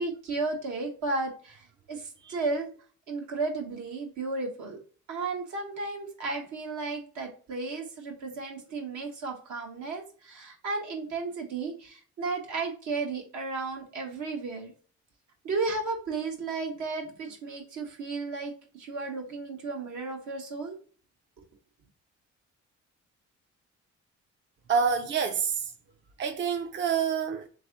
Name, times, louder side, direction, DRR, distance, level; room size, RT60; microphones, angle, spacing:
voice 1, 0.0-2.7 3.1-4.8 5.1-14.7 15.4-20.7, right 3 dB, 70° right, 1.4 m, -34 dB
voice 2, 24.7-25.7 26.2-27.5, right 6 dB, 40° right, 0.5 m, -27 dB
3.6 x 3.2 x 3.9 m
cardioid pair, 90°, 30 cm